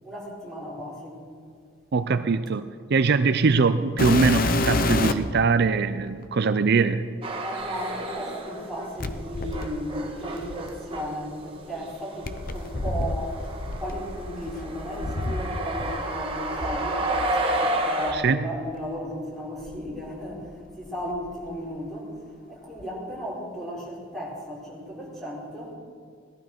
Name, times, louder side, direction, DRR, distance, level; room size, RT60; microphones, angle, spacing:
voice 1, 0.0-1.2 7.4-17.1 17.6-20.5 20.8-22.1 22.5-25.7, equal, ahead, -4 dB, 4.5 m, -35 dB
voice 2, 1.9-7.1 18.1-18.4, right 4 dB, 55° right, 11 dB, 0.5 m, -22 dB
sound 1, 4.0-5.4 6.2-6.3 9.0-11.1 12.2-16.0 16.2-17.3 18.1-18.2 18.8-18.9 19.6-20.7 21.0-21.5 22.8-22.9, left 2 dB, 45° left, 0.8 m, -29 dB
sound 2, 7.2-8.9 9.2-18.1, right 1 dB, 30° right, 1.9 m, -31 dB
18.0 x 12.5 x 6.0 m, 2.2 s
head